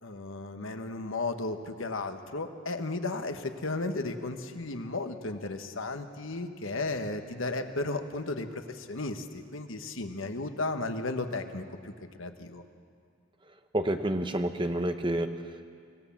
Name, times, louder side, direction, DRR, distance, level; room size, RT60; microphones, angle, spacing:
voice 1, 0.0-12.6, left 2 dB, 70° left, 7 dB, 1.3 m, -34 dB
voice 2, 13.7-15.6, right 1 dB, 25° right, 7 dB, 1.1 m, -29 dB
25.0 x 16.5 x 7.3 m, 2.2 s
head